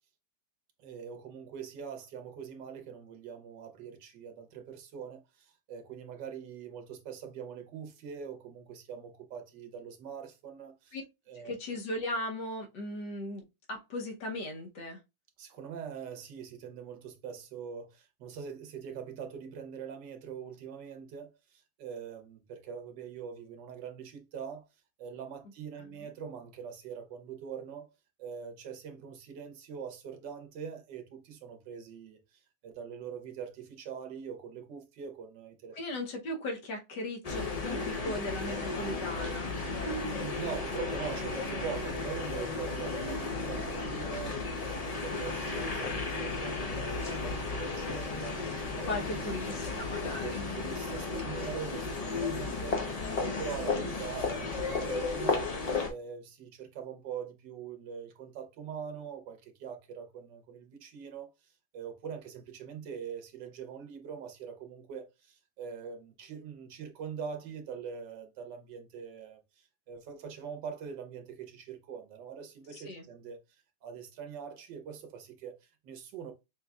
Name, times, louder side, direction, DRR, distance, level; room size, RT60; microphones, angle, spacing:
voice 1, 0.8-11.0 11.3-11.5 15.4-24.7 25.0-27.9 28.2-35.8 40.1-44.4 44.8-49.0 50.2-55.5 55.9-61.3 61.7-73.4 73.8-76.3, right 7 dB, 85° right, 1.5 m, -43 dB
voice 2, 11.4-15.0 25.8-26.1 35.7-39.5 48.7-50.4 72.7-73.0, left 1 dB, 80° left, 1.6 m, -38 dB
sound 1, 37.2-55.9, left 3 dB, 45° left, 0.4 m, -34 dB
6.1 x 2.8 x 2.3 m
omnidirectional pair, 1.9 m